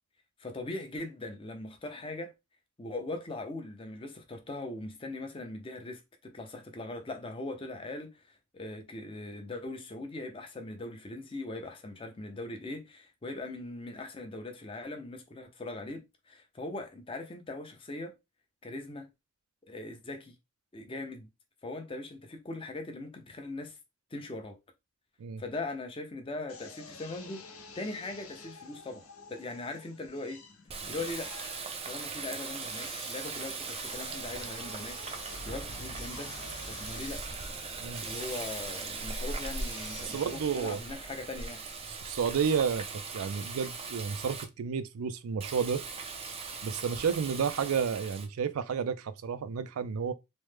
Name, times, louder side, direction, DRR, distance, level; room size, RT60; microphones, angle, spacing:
voice 1, 0.4-2.3 2.8-18.2 18.6-19.1 19.7-20.4 20.7-21.3 21.6-23.8 24.1-24.6 25.4-30.4 30.9-31.3 31.8-35.0 35.5-36.3 36.7-37.2 38.0-41.6, left 2 dB, 25° left, 0.5 m, -40 dB
Drill, 26.5-41.8, left 4 dB, 90° left, 0.7 m, -51 dB
Water tap faucet, 30.7-44.4 45.4-48.3, right 4 dB, 30° right, 0.4 m, -39 dB
sound 1, 34.2-40.4, left 1 dB, 65° left, 0.9 m, -50 dB
voice 2, 40.1-40.8 42.0-42.9 43.1-45.8 46.6-50.1, right 6 dB, 90° right, 0.4 m, -31 dB
3.0 x 2.1 x 3.2 m
head